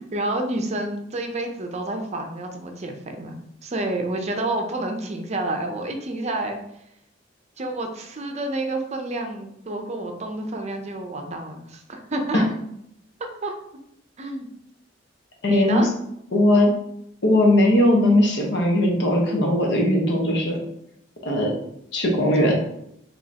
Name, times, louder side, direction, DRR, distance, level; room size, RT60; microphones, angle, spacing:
voice 1, 0.1-3.4 3.6-6.6 7.6-12.5 13.2-13.6 14.2-14.5 15.5-15.9 22.3-22.5, right 2 dB, 35° right, 4 dB, 0.6 m, -29 dB
voice 2, 15.4-15.9 16.3-16.7 17.2-20.6 21.2-21.5 21.9-22.5, left 1 dB, 65° left, -1 dB, 1.1 m, -19 dB
5.1 x 3.1 x 2.8 m, 0.76 s
head